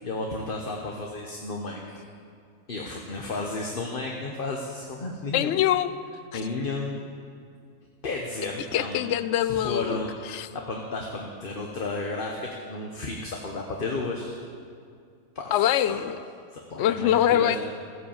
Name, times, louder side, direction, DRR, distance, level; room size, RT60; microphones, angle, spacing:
voice 1, 0.0-2.0 2.7-5.6 6.3-7.0 8.0-9.0 9.5-14.4 15.3-15.5 15.9-16.0 16.7-17.6, left 3 dB, 40° left, 0 dB, 1.2 m, -33 dB
voice 2, 5.3-5.9 6.3-6.4 8.7-10.0 10.3-10.5 15.5-16.2 16.8-17.6, left 11 dB, 65° left, 13 dB, 0.8 m, -23 dB
15.0 x 10.5 x 7.2 m, 2.3 s
omnidirectional pair, 1.5 m